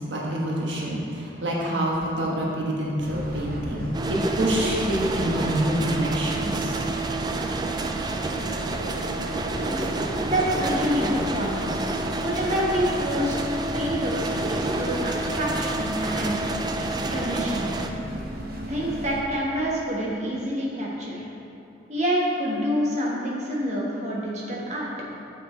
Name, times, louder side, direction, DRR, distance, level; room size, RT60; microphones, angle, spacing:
voice 1, 0.1-6.8, right 1 dB, 80° right, -3 dB, 1.3 m, -26 dB
sound 1, 3.0-19.2, equal, 55° right, 0.8 m, -36 dB
sound 2, 3.9-17.9, right 2 dB, 20° right, 0.3 m, -29 dB
voice 2, 10.3-11.7 12.2-16.4 16.8-17.7 18.7-21.2 21.9-24.9, equal, 40° right, -4 dB, 1.4 m, -27 dB
7.1 x 6.4 x 4.4 m, 2.7 s
head